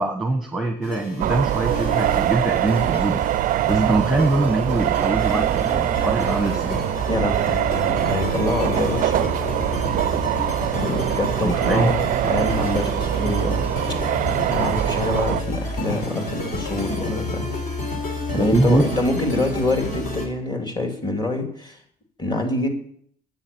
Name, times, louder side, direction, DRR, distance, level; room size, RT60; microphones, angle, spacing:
voice 1, 0.0-3.2 3.7-6.8 11.4-11.9 18.4-18.8, right 2 dB, ahead, 4 dB, 1.2 m, -23 dB
sound 1, 0.8-20.3, left 1 dB, 55° left, 3.3 m, -30 dB
sound 2, 1.2-15.4, right 13 dB, 55° right, 0.4 m, -23 dB
voice 2, 7.1-9.3 10.7-13.7 14.4-17.6 18.3-21.8 22.2-22.7, left 2 dB, 25° left, 3 dB, 2.7 m, -25 dB
9.8 x 8.5 x 7.1 m, 0.64 s
cardioid pair, 110°, 17 cm